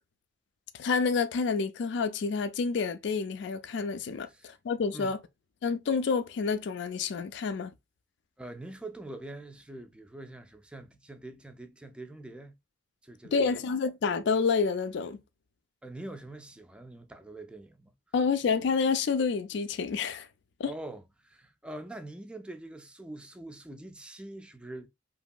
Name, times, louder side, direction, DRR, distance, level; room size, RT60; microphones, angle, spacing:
voice 1, 0.8-5.2 5.6-7.7 13.3-15.2 18.1-20.3 20.6-20.7, left 5 dB, 65° left, 0.4 m, -28 dB
voice 2, 4.3-4.6 4.9-5.1 8.4-12.5 13.0-13.6 15.8-18.0 20.6-24.9, right 2 dB, 5° right, 0.3 m, -44 dB
2.9 x 2.6 x 2.2 m
head